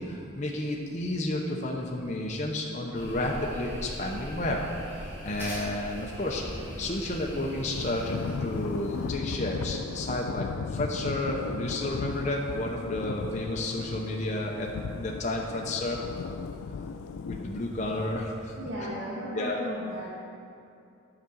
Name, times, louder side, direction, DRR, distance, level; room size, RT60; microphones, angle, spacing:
voice 1, 0.0-16.0 17.2-18.9 19.3-19.6, left 1 dB, 35° left, -1 dB, 0.7 m, -31 dB
sound 1, 2.9-9.1, equal, 10° right, 2.4 m, -41 dB
Thunder / Rain, 7.7-18.3, left 5 dB, 85° left, 0.4 m, -36 dB
voice 2, 18.6-20.0, equal, 60° right, -9 dB, 2.0 m, -35 dB
9.3 x 5.1 x 7.1 m, 2.6 s
head